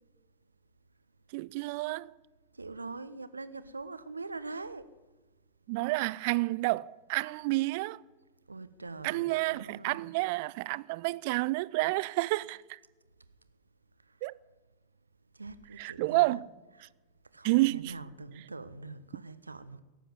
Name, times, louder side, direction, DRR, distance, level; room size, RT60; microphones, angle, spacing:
voice 1, 1.3-2.1 5.7-8.0 9.0-12.8 14.2-14.3 15.8-16.5 17.4-17.9, right 21 dB, 50° right, 0.4 m, -30 dB
voice 2, 2.5-4.9 8.5-10.1 15.3-16.4 16.8-16.9 17.3-19.8, right 3 dB, 80° right, 0.7 m, -43 dB
17.5 x 7.7 x 8.2 m
figure-of-eight pair, 90°, 0 cm